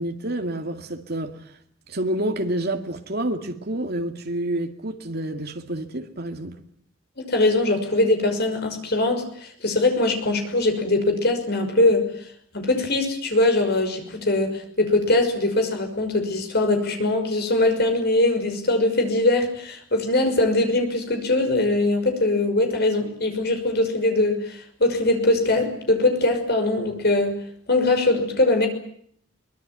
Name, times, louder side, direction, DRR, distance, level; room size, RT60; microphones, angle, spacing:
voice 1, 0.0-1.4 1.9-6.5, right 1 dB, 50° right, 2.3 m, -28 dB
voice 2, 7.2-12.0 12.5-27.4 27.7-28.7, left 2 dB, 50° left, 5.8 m, -21 dB
23.5 x 21.0 x 9.2 m
head